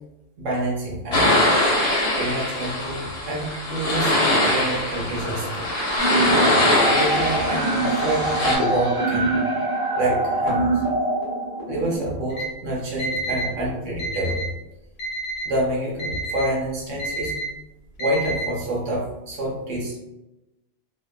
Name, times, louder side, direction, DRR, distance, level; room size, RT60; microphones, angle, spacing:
voice 1, 0.4-1.3 2.2-5.7 6.8-9.4 9.9-10.8 11.7-14.4 15.5-17.4 18.0-20.0, right 1 dB, 70° right, -3 dB, 1.0 m, -27 dB
sound 1, 1.1-8.6, left 1 dB, 55° left, 1.0 m, -22 dB
sound 2, 6.0-12.0, right 2 dB, 30° right, 1.0 m, -24 dB
Alarm, 12.3-12.5 13.0-13.5 14.0-14.5 15.0-15.5 16.0-16.5 17.0-17.5 18.0-18.5, right 2 dB, 80° left, 1.1 m, -29 dB
2.7 x 2.2 x 2.2 m, 0.99 s
omnidirectional pair, 1.4 m